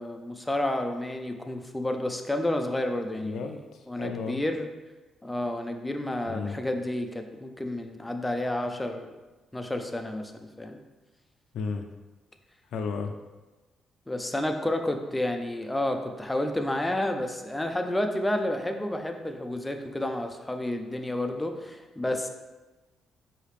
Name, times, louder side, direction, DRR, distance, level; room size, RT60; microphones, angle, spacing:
voice 1, 0.0-3.5 3.9-4.7 5.2-9.1 9.5-10.8 14.1-22.3, left 1 dB, 10° left, 5 dB, 0.4 m, -30 dB
voice 2, 3.2-4.4 6.3-6.6 11.5-11.9 12.7-13.1, left 5 dB, 75° left, 5 dB, 0.4 m, -33 dB
4.8 x 2.8 x 3.2 m, 1.2 s
cardioid pair, 90°, 0 cm